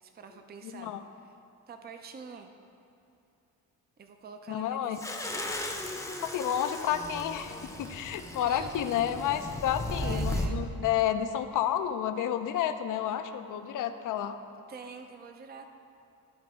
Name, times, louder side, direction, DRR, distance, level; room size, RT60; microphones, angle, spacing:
voice 1, 0.0-0.9 1.2-1.3 1.7-2.5 4.0-5.8 8.4-9.0 10.0-10.6 14.7-15.7, right 5 dB, 30° right, 6 dB, 0.5 m, -46 dB
voice 2, 0.6-1.0 4.5-5.0 6.3-14.4, left 10 dB, 65° left, 9 dB, 0.6 m, -30 dB
sound 1, 5.0-10.5, left 1 dB, 10° left, 0.7 m, -36 dB
13.5 x 4.8 x 3.6 m, 2.6 s
cardioid pair, 105°, 33 cm